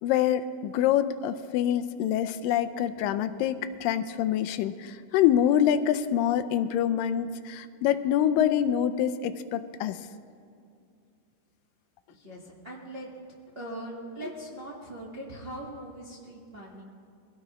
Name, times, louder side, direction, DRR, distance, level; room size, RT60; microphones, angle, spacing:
voice 1, 0.0-10.0, left 10 dB, 85° left, 10 dB, 2.3 m, -26 dB
voice 2, 12.1-13.1 13.5-16.8, right 1 dB, 25° right, -5 dB, 1.2 m, -41 dB
23.0 x 16.5 x 3.1 m, 2.4 s
omnidirectional pair, 3.9 m